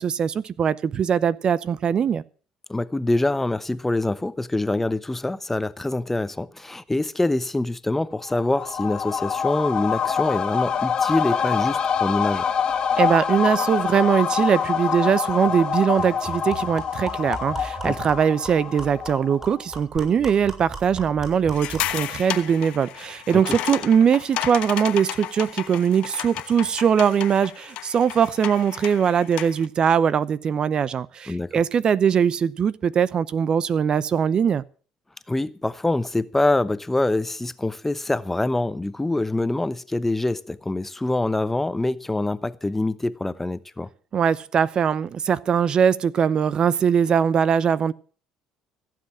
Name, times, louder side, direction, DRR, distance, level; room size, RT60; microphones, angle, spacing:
voice 1, 0.0-2.2 13.0-34.6 44.1-47.9, right 7 dB, 45° right, 0.7 m, -21 dB
voice 2, 2.7-12.4 17.8-18.0 23.3-23.6 31.3-31.6 35.3-43.9, left 2 dB, 10° left, 0.9 m, -25 dB
sound 1, 8.2-19.6 20.0-20.1, left 7 dB, 45° left, 1.5 m, -25 dB
sound 2, 15.5-15.6 16.0-22.0, right 3 dB, 25° right, 6.2 m, -38 dB
sound 3, 21.5-29.7, left 13 dB, 65° left, 1.1 m, -33 dB
15.5 x 7.7 x 7.5 m
hypercardioid pair, 65°, 2 cm